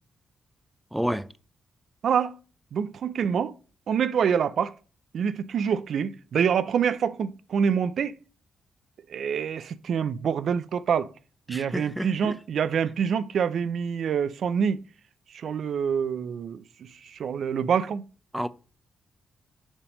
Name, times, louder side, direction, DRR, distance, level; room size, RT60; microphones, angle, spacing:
voice 1, 0.9-1.3 11.5-12.3 18.3-18.5, equal, 5° right, 0.4 m, -30 dB
voice 2, 2.0-2.4 2.7-3.6 3.9-4.7 5.1-8.2 9.1-11.1 11.5-14.8 15.3-18.0, right 7 dB, 70° right, 0.5 m, -26 dB
7.2 x 3.4 x 5.1 m
cardioid pair, 65°, 0 cm